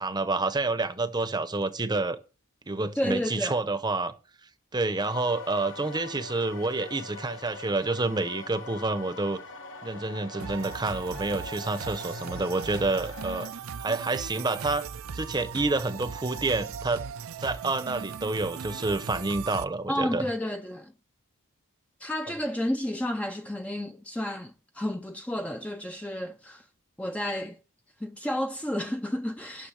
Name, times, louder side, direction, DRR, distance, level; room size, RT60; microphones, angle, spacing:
voice 1, 0.0-2.2 2.7-4.1 4.7-9.4 9.8-13.5 13.8-14.9 15.1-17.0 17.4-20.3, right 3 dB, 20° right, 0.8 m, -28 dB
voice 2, 2.9-3.6 19.9-20.9 22.0-26.7 27.0-27.6 28.0-29.7, left 1 dB, 5° left, 0.5 m, -31 dB
sound 1, 5.0-13.5, left 3 dB, 60° left, 1.1 m, -43 dB
sound 2, 10.4-19.7, right 6 dB, 70° right, 0.6 m, -38 dB
10.0 x 6.2 x 6.4 m
head